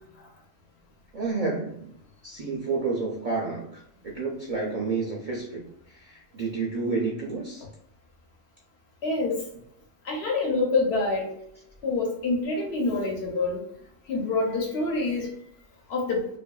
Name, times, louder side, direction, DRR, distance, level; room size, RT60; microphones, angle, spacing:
voice 1, 1.1-1.9 2.2-7.7, right 4 dB, 55° right, -2 dB, 0.4 m, -30 dB
voice 2, 9.0-9.3 10.1-11.4 11.8-13.6 14.1-15.3 15.9-16.2, left 3 dB, 60° left, 0 dB, 1.0 m, -26 dB
2.6 x 2.5 x 2.2 m, 0.71 s
omnidirectional pair, 1.2 m